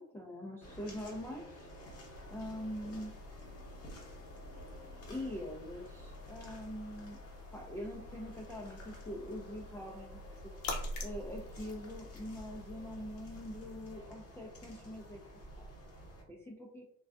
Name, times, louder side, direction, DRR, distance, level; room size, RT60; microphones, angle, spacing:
voice 1, 0.0-1.7 2.3-3.1 5.1-7.2 7.5-10.5 11.0-15.2 15.6-15.7 16.3-16.8, left 1 dB, 10° left, -3 dB, 0.3 m, -43 dB
sound 1, 0.6-16.2, equal, 40° left, 0.8 m, -52 dB
sound 2, 2.1-14.0, left 2 dB, 90° left, 0.6 m, -47 dB
2.3 x 2.3 x 2.3 m, 0.67 s
supercardioid pair, 80°, 35 cm